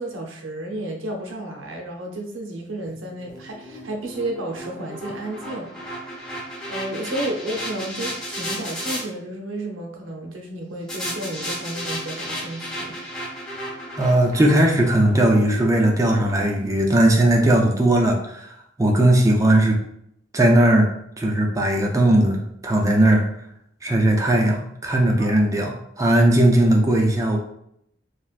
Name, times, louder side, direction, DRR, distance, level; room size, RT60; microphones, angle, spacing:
voice 1, 0.0-13.1 25.2-25.4, right 1 dB, 90° right, 1 dB, 0.7 m, -32 dB
sound 1, 2.8-9.0 10.9-17.1, equal, 5° left, 0.8 m, -34 dB
voice 2, 13.9-18.5 18.8-19.8 20.3-20.9 21.2-23.3 23.8-27.4, right 1 dB, 15° right, 0 dB, 0.4 m, -18 dB
3.3 x 2.4 x 2.4 m, 0.74 s
head